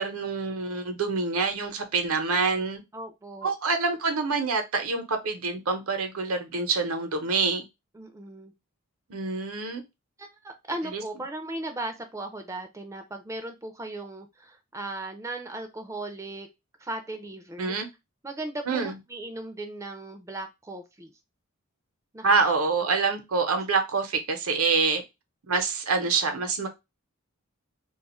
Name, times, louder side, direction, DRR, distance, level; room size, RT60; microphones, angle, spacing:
voice 1, 0.0-2.8 3.4-7.6 9.1-9.8 10.9-11.0 17.6-17.9 18.7-18.9 22.2-25.0 25.5-26.7, right 4 dB, 75° right, 6 dB, 0.8 m, -26 dB
voice 2, 2.9-3.5 7.9-8.5 10.2-16.5 16.8-17.8 18.2-21.1 22.1-22.4, right 2 dB, 15° right, 6 dB, 0.4 m, -37 dB
2.5 x 2.4 x 4.1 m, 0.22 s
head